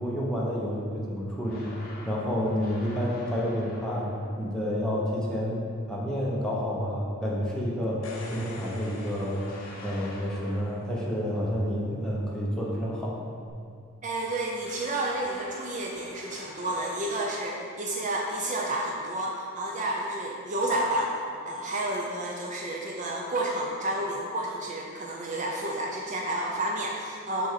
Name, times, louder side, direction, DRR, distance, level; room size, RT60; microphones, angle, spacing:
voice 1, 0.0-1.8 2.0-4.1 4.4-8.0 8.3-9.4 9.8-13.2, equal, 5° left, -5 dB, 1.0 m, -29 dB
sound 1, 1.4-4.4 8.2-11.1 14.6-17.7, left 2 dB, 45° left, 1.0 m, -47 dB
sound 2, 7.8-10.4 13.5-13.6, left 2 dB, 85° left, 0.8 m, -44 dB
voice 2, 14.0-21.1 21.4-27.5, right 1 dB, 35° right, -1 dB, 0.5 m, -30 dB
6.3 x 3.4 x 5.8 m, 2.4 s
head